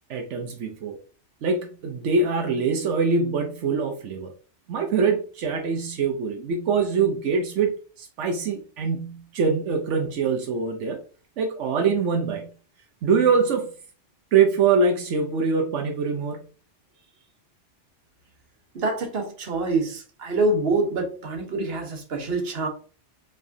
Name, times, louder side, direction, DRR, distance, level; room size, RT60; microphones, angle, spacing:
voice 1, 0.1-1.0 1.4-4.3 4.7-11.0 11.4-12.5 13.0-13.7 14.3-16.4, right 5 dB, 85° right, 1.0 m, -24 dB
voice 2, 18.7-22.7, right 2 dB, 60° right, 1.2 m, -26 dB
4.7 x 3.6 x 2.6 m
omnidirectional pair, 1.2 m